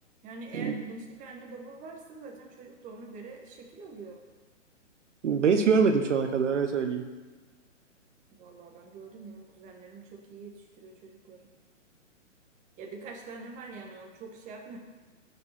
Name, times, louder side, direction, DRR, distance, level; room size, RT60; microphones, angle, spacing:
voice 1, 0.2-4.2 8.4-11.5 12.8-14.8, right 3 dB, 20° right, 1 dB, 1.5 m, -45 dB
voice 2, 5.2-7.0, right 5 dB, 70° right, 6 dB, 1.2 m, -24 dB
14.5 x 6.8 x 4.4 m, 1.3 s
hypercardioid pair, 135°, 38 cm